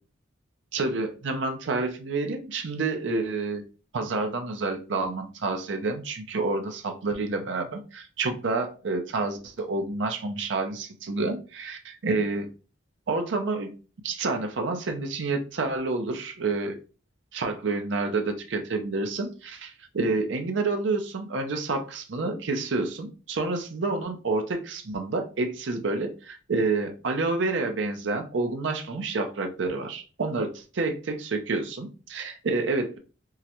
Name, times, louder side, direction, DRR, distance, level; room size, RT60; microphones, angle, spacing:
voice 1, 0.7-3.6 3.9-12.5 13.1-13.7 14.0-16.8 17.3-30.5 30.8-33.0, right 3 dB, 75° right, 5 dB, 0.5 m, -29 dB
3.7 x 2.1 x 2.9 m, 0.35 s
head